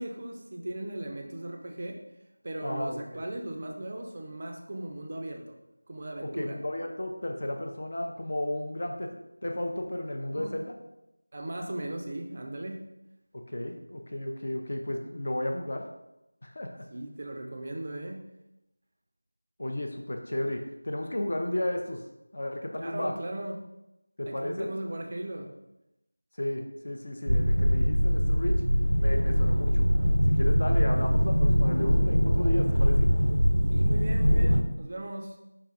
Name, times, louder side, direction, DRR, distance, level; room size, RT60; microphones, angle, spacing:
voice 1, 0.0-2.0 2.4-5.6 5.9-6.6 10.3-10.5 11.3-12.9 16.9-18.2 22.8-23.6 24.3-25.6 33.7-35.4, right 1 dB, 30° right, 3 dB, 0.4 m, -37 dB
voice 2, 2.6-3.3 6.2-10.7 13.5-15.8 16.4-16.8 19.6-22.0 22.3-23.1 24.2-24.7 26.4-28.6 29.0-29.9 30.3-33.1, left 1 dB, 45° left, 3 dB, 0.4 m, -33 dB
sound 1, 27.3-34.6, equal, 85° right, 0.5 m, -23 dB
5.6 x 3.4 x 2.5 m, 0.91 s
figure-of-eight pair, 170°, 0 cm